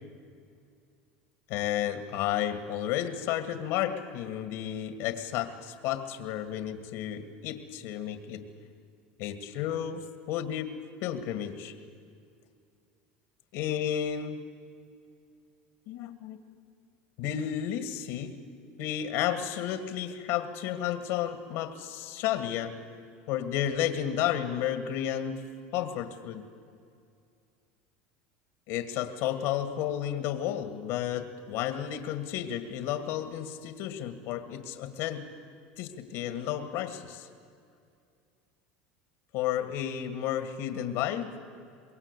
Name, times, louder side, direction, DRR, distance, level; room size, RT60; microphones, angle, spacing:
voice 1, 1.5-8.4 9.2-11.7 13.5-14.5 15.9-16.4 17.2-18.4 18.8-22.8 23.3-25.4 25.7-26.4 28.7-35.3 35.8-37.3 39.3-41.4, left 10 dB, 70° left, 9 dB, 2.0 m, -32 dB
25.0 x 21.5 x 8.3 m, 2.3 s
supercardioid pair, 100°, 5 cm